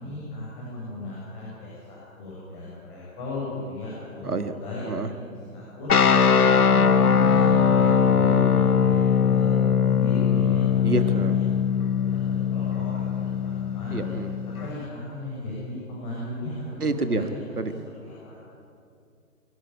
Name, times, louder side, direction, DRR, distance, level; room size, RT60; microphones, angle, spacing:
voice 1, 0.0-5.9 6.4-9.6 9.9-11.5 12.0-14.1 14.6-17.4 18.0-18.4, left 2 dB, 30° left, -7 dB, 7.1 m, -36 dB
sound 1, 5.9-14.8, left 7 dB, 80° left, 0.9 m, -21 dB
voice 2, 10.8-11.4 13.9-14.3 16.8-17.2 17.6-17.7, right 3 dB, 90° right, 9 dB, 1.7 m, -27 dB
25.5 x 11.5 x 9.4 m, 2.4 s
figure-of-eight pair, 135°, 44 cm